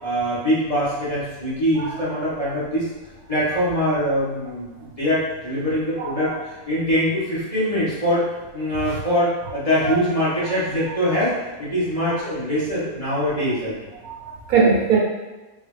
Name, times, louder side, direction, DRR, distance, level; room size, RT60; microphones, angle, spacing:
voice 1, 0.0-2.9 3.3-8.3 8.5-13.9, equal, 25° left, -11 dB, 1.2 m, -23 dB
voice 2, 14.0-15.0, right 5 dB, 75° right, -2 dB, 1.2 m, -20 dB
3.8 x 2.6 x 3.2 m, 1.1 s
omnidirectional pair, 1.6 m